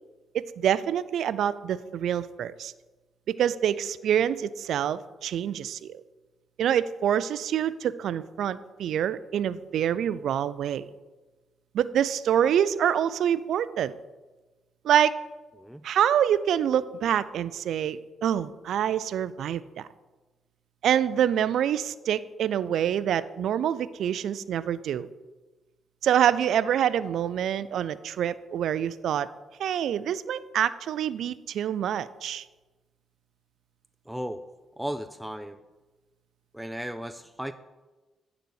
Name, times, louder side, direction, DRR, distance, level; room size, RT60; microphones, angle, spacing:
voice 1, 0.3-2.7 3.3-6.0 6.6-10.9 11.7-13.9 14.8-15.1 15.8-19.9 20.8-25.1 26.0-29.3 29.6-32.4, right 9 dB, 70° right, 16 dB, 0.3 m, -26 dB
voice 2, 34.1-34.4 34.8-35.6 36.5-37.5, equal, 5° right, 10 dB, 0.5 m, -35 dB
10.0 x 4.0 x 6.4 m, 1.2 s
hypercardioid pair, 45°, 0 cm